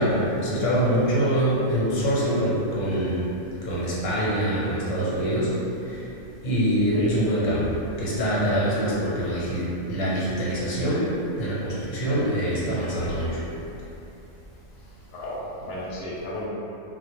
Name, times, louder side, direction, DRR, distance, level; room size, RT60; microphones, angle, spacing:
voice 1, 0.0-3.3 3.6-5.5 5.9-6.0 6.4-13.4, equal, 90° left, -7 dB, 1.0 m, -24 dB
voice 2, 12.4-12.8 15.1-16.5, left 1 dB, 60° left, -6 dB, 0.7 m, -34 dB
2.1 x 2.1 x 2.9 m, 2.8 s
omnidirectional pair, 1.3 m